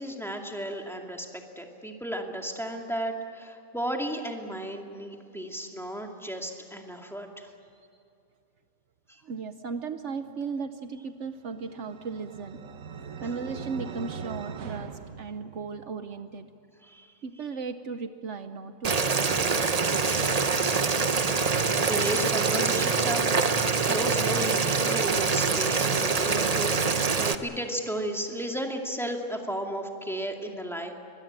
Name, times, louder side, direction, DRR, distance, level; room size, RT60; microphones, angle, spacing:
voice 1, 0.0-7.5 9.1-9.2 16.8-17.1 21.8-30.9, right 1 dB, ahead, 2 dB, 2.3 m, -34 dB
voice 2, 9.2-12.6 13.2-16.5 17.2-19.5, right 5 dB, 65° right, 9 dB, 1.2 m, -36 dB
sound 1, 11.5-16.0, right 6 dB, 85° right, 1.6 m, -40 dB
Boiling, 18.8-27.3, right 4 dB, 35° right, 0.9 m, -25 dB
23.5 x 21.5 x 8.9 m, 2.7 s
omnidirectional pair, 1.4 m